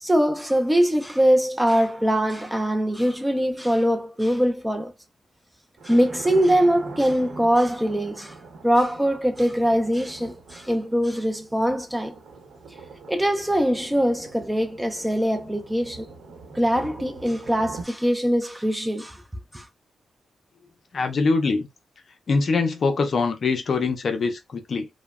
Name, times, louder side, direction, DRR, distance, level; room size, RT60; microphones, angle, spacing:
voice 1, 0.0-4.9 5.8-8.4 8.6-12.2 13.1-16.1 16.5-19.2 19.5-19.7, equal, 5° right, 0.4 m, -22 dB
Thunder, 5.8-17.8, right 3 dB, 80° right, 0.8 m, -43 dB
voice 2, 20.9-21.7 22.3-24.9, left 4 dB, 50° left, 0.5 m, -23 dB
3.0 x 2.0 x 2.3 m
wide cardioid pair, 125°, 0 cm